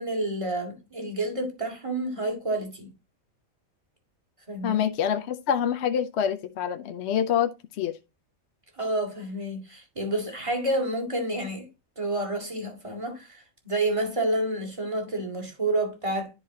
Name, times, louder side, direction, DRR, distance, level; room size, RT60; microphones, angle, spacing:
voice 1, 0.0-2.9 4.5-4.9 8.8-11.7 12.0-16.3, right 1 dB, 25° right, 2.1 m, -29 dB
voice 2, 4.6-7.5 7.8-8.0, left 8 dB, 65° left, 0.8 m, -26 dB
11.0 x 4.7 x 2.8 m
omnidirectional pair, 1.4 m